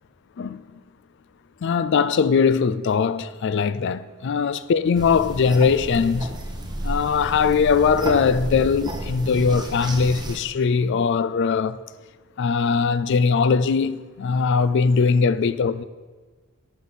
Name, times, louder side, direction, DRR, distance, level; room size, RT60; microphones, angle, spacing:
voice 1, 1.6-6.3 6.8-11.8 12.4-15.8, left 5 dB, 50° left, 0.3 m, -20 dB
sound 1, 4.9-10.4, right 1 dB, 20° right, 0.8 m, -31 dB
11.0 x 6.2 x 4.0 m
head